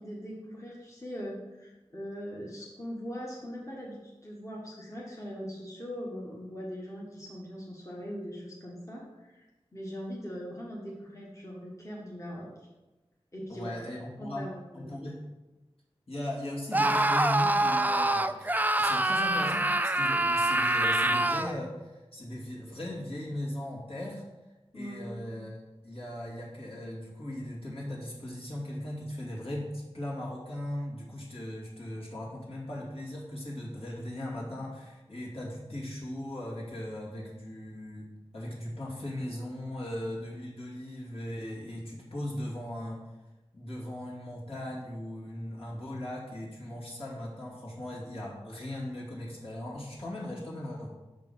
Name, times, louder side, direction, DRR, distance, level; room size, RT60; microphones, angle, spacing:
voice 1, 0.0-9.4 9.7-12.5 13.3-13.7 14.2-14.8 24.7-25.1, equal, 30° left, -4 dB, 1.4 m, -41 dB
voice 2, 13.5-14.5 14.7-15.2 16.1-24.2 24.7-38.1 38.3-43.0 43.5-50.9, left 1 dB, 65° left, -6 dB, 2.5 m, -38 dB
Screaming, 16.7-21.6, right 1 dB, 15° right, 0.4 m, -25 dB
6.3 x 5.5 x 5.5 m, 1.1 s
wide cardioid pair, 65°, 11 cm